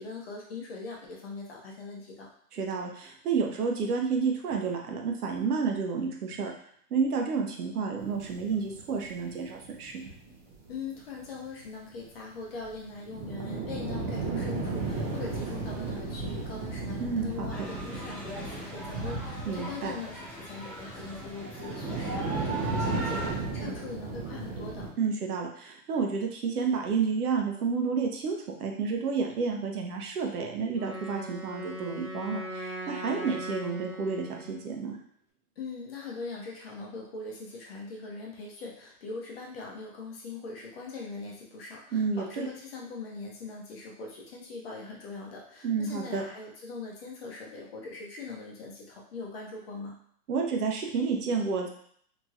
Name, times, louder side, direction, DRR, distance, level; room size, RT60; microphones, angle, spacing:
voice 1, 0.0-2.3 10.7-24.9 35.6-49.9, left 4 dB, 40° left, -2 dB, 0.7 m, -41 dB
voice 2, 2.5-6.5 6.9-10.1 17.0-17.7 19.5-19.9 25.0-35.0 41.9-42.5 45.6-46.2 50.3-51.7, right 5 dB, 70° right, 1 dB, 0.8 m, -30 dB
sound 1, 8.0-11.0 11.3-11.4 11.6-11.7 12.0-12.1 12.5-20.2 20.6-24.9, right 3 dB, 40° right, 0.8 m, -35 dB
sound 2, 17.5-23.3, right 1 dB, 10° right, 0.6 m, -38 dB
Wind instrument woodwind instrument, 30.7-34.7, right 1 dB, 10° left, 1.0 m, -39 dB
2.9 x 2.8 x 2.4 m, 0.62 s
hypercardioid pair, 155°, 47 cm